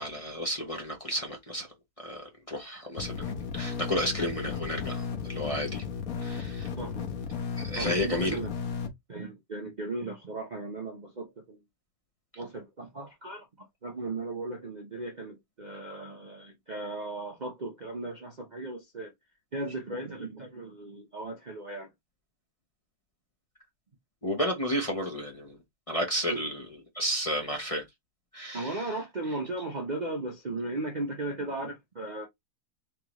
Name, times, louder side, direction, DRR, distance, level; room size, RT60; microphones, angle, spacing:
voice 1, 0.0-1.7 2.0-5.8 6.2-6.7 7.6-8.4 24.2-25.5 25.9-26.6 26.9-27.8 28.3-28.8, equal, 30° left, 0.6 m, -32 dB
sound 1, 3.0-8.9, left 6 dB, 55° left, 1.3 m, -35 dB
voice 2, 6.8-7.1 7.7-8.5 9.1-11.6 12.4-19.1 19.5-21.9 26.3-26.4 28.5-32.3, right 2 dB, 85° right, 0.4 m, -36 dB
3.7 x 3.6 x 3.0 m
omnidirectional pair, 2.2 m